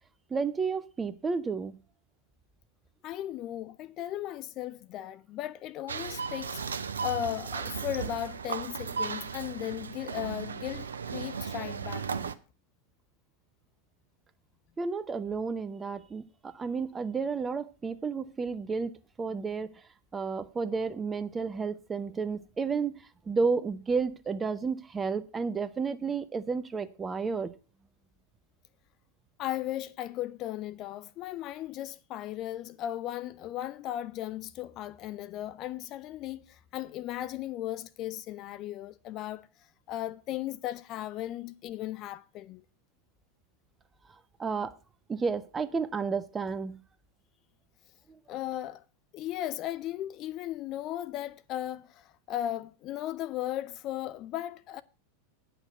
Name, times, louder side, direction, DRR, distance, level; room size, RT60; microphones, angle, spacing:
voice 1, 0.3-1.7 14.8-16.2 16.5-18.9 19.2-19.7 20.1-23.0 23.3-27.5 44.4-44.7 45.1-46.8, right 5 dB, 15° right, 0.8 m, -31 dB
voice 2, 3.0-12.3 29.4-39.5 39.9-42.6 48.3-48.8 49.1-54.8, left 13 dB, 35° left, 0.5 m, -36 dB
sound 1, 5.9-12.3, right 6 dB, 70° right, 0.6 m, -36 dB
9.9 x 5.9 x 6.7 m
figure-of-eight pair, 90°, 0 cm